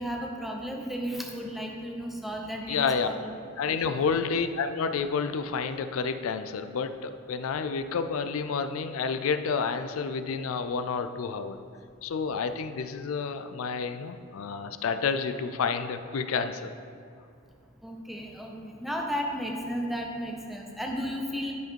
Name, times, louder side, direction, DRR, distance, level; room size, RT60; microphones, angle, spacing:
voice 1, 0.0-3.3 3.7-3.8 17.8-21.5, equal, ahead, 0 dB, 0.8 m, -34 dB
voice 2, 2.7-3.1 3.6-11.6 12.0-16.7, left 5 dB, 85° left, 9 dB, 0.4 m, -29 dB
10.5 x 4.8 x 4.5 m, 2.4 s
head